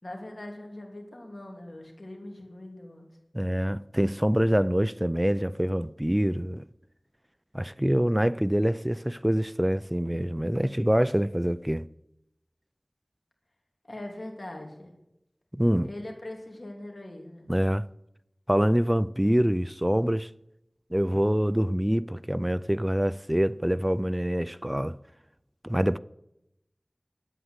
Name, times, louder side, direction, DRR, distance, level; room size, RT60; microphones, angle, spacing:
voice 1, 0.0-3.1 13.8-14.9 15.8-17.5, left 1 dB, 65° left, 3.1 m, -41 dB
voice 2, 3.3-6.6 7.5-11.9 15.5-15.9 17.5-17.8 18.5-20.3 20.9-25.0 25.6-26.0, equal, 15° right, 0.4 m, -25 dB
11.5 x 9.3 x 8.1 m
wide cardioid pair, 45°, 0 cm